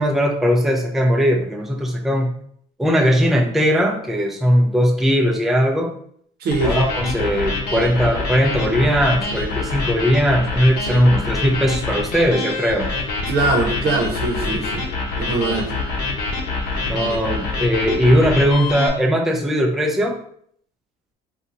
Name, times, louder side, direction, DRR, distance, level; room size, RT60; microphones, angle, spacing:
voice 1, 0.0-2.3 2.8-5.9 6.6-12.9 16.9-20.2, equal, ahead, 1 dB, 0.4 m, -19 dB
voice 2, 6.4-6.8 13.3-14.9 15.2-15.7, right 2 dB, 70° right, 3 dB, 0.8 m, -22 dB
sound 1, 6.5-18.9, left 3 dB, 75° left, 1.0 m, -26 dB
2.8 x 2.3 x 3.8 m, 0.63 s
cardioid pair, 110°, 17 cm